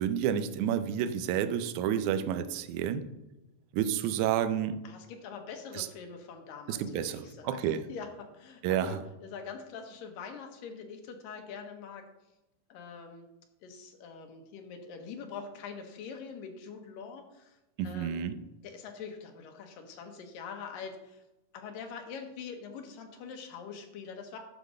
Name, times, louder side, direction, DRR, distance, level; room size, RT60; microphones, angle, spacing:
voice 1, 0.0-3.1 3.7-4.8 5.8-5.9 6.7-7.9 8.6-9.0 17.8-18.4, right 9 dB, 75° right, 11 dB, 1.9 m, -30 dB
voice 2, 4.8-12.0 12.7-13.3 13.6-17.6 17.8-18.2 18.6-21.2 21.5-24.4, left 5 dB, 90° left, 4 dB, 2.8 m, -44 dB
9.8 x 5.1 x 6.4 m, 0.97 s
omnidirectional pair, 3.8 m